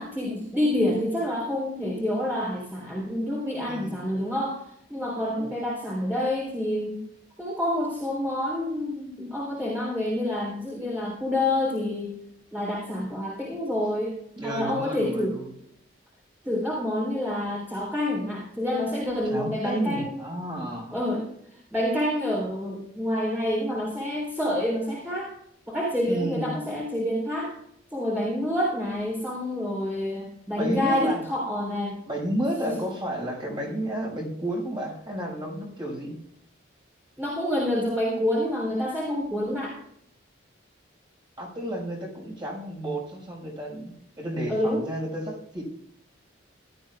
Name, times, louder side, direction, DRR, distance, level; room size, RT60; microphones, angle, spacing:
voice 1, 0.0-7.0 7.4-12.1 12.5-14.2 14.4-15.4 16.4-20.3 20.9-21.3 21.7-25.3 25.7-27.5 27.9-32.0 32.6-32.7 37.2-39.8 44.5-44.8, left 1 dB, 10° right, -4 dB, 3.8 m, -28 dB
voice 2, 3.6-4.0 14.4-15.5 19.3-21.0 26.0-26.5 30.6-31.2 32.1-36.2 41.4-43.9 44.2-45.6, right 1 dB, 25° right, -1 dB, 5.9 m, -31 dB
17.0 x 13.0 x 2.5 m, 0.69 s
head